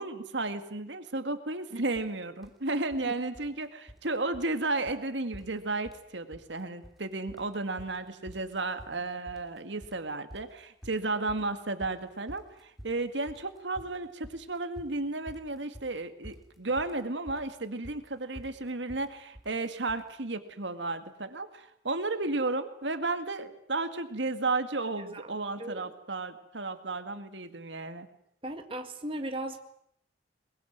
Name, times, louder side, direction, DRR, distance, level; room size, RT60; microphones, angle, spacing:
voice 1, 0.0-28.1, right 2 dB, 75° right, 9 dB, 2.0 m, -33 dB
sound 1, 1.9-2.1 2.4-3.1 3.3-4.1 4.3-4.6 4.9-5.0 5.3-6.1 6.3-7.0 7.3-20.1, equal, ahead, 3.0 m, -50 dB
voice 2, 25.6-25.9 28.4-29.6, right 1 dB, 30° right, 5 dB, 1.8 m, -37 dB
22.5 x 21.5 x 9.4 m, 0.70 s
head